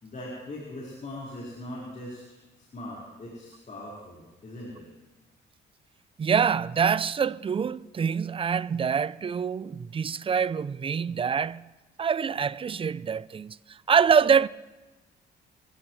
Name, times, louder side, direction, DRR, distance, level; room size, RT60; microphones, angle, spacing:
voice 1, 0.0-4.9, left 1 dB, 40° left, 4.6 m, -40 dB
voice 2, 6.2-11.7 12.0-14.5, right 6 dB, 25° right, 0.4 m, -25 dB
25.0 x 15.5 x 3.2 m
cardioid pair, 90°, 20 cm